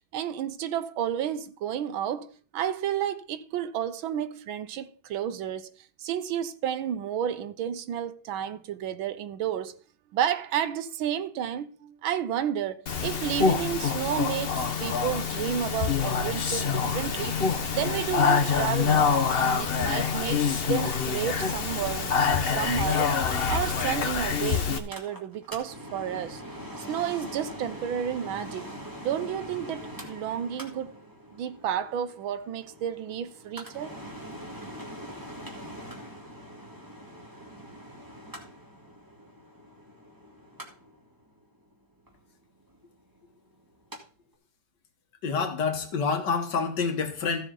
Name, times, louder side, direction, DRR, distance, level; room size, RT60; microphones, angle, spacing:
voice 1, 0.1-5.7 6.0-9.8 10.1-17.4 17.7-22.2 22.4-23.2 23.5-26.4 26.8-28.7 29.0-30.9 31.3-34.0, right 9 dB, 85° right, 1.6 m, -31 dB
Speech, 12.9-24.8, left 6 dB, 35° left, 1.0 m, -26 dB
Mechanical fan, 24.6-44.0 44.3-44.4, equal, 10° right, 1.9 m, -43 dB
voice 2, 45.2-47.5, left 5 dB, 60° left, 1.9 m, -27 dB
15.0 x 7.1 x 3.9 m
omnidirectional pair, 2.2 m